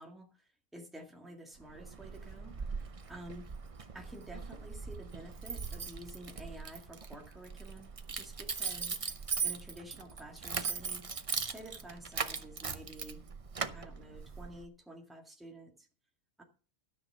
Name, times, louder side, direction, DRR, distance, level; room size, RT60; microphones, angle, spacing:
voice 1, 0.0-3.5 3.9-13.2 13.7-15.9 16.4-16.5, right 1 dB, ahead, 1 dB, 1.8 m, -50 dB
Keys jangling, 1.6-14.6, right 5 dB, 35° right, 0.6 m, -40 dB
13.0 x 6.2 x 6.7 m, 0.38 s
omnidirectional pair, 1.5 m